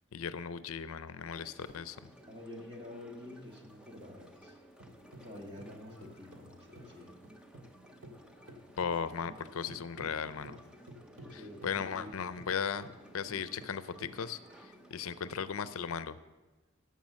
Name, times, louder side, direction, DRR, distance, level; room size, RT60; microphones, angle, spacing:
voice 1, 0.1-2.0 8.8-10.6 11.3-12.9 13.1-16.2, left 7 dB, 85° left, 14 dB, 0.5 m, -37 dB
sound 1, 1.2-15.9, right 1 dB, 5° right, 0.6 m, -57 dB
voice 2, 2.0-4.6 5.2-7.1 11.2-12.2, left 1 dB, 25° right, -1 dB, 1.8 m, -48 dB
sound 2, 4.3-7.8 8.0-14.7, right 1 dB, 65° right, 1.7 m, -53 dB
13.5 x 5.6 x 7.4 m, 1.2 s
head